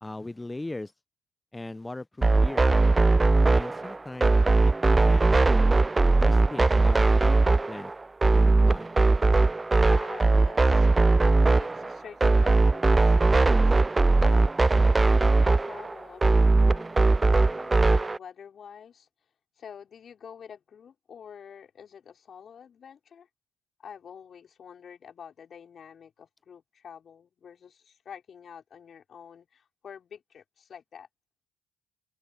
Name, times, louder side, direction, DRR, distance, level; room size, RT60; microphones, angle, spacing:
voice 1, 0.0-0.9 1.5-2.7 3.5-4.3 4.6-5.4 6.0-7.9 8.3-8.9, left 2 dB, 15° left, 0.7 m, -39 dB
sound 1, 2.2-18.2, right 3 dB, 20° right, 0.3 m, -20 dB
voice 2, 9.8-19.1 19.6-23.3 23.8-31.1, left 7 dB, 50° left, 4.1 m, -47 dB
supercardioid pair, 65°, 0 cm